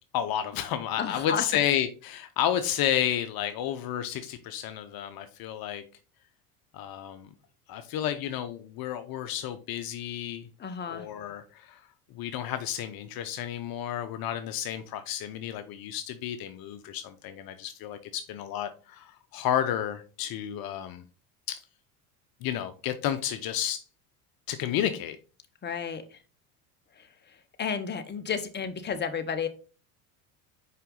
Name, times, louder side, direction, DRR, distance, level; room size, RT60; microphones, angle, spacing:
voice 1, 0.1-5.8 6.7-7.3 7.7-10.5 10.9-11.8 12.1-21.0 21.5-21.6 22.4-23.8 24.5-25.2, left 10 dB, 50° left, 9 dB, 0.8 m, -31 dB
voice 2, 1.0-1.4 10.6-11.0 25.6-26.0 27.6-29.5, left 6 dB, 25° left, 8 dB, 1.0 m, -31 dB
5.6 x 5.1 x 3.8 m, 0.36 s
hypercardioid pair, 80°, 46 cm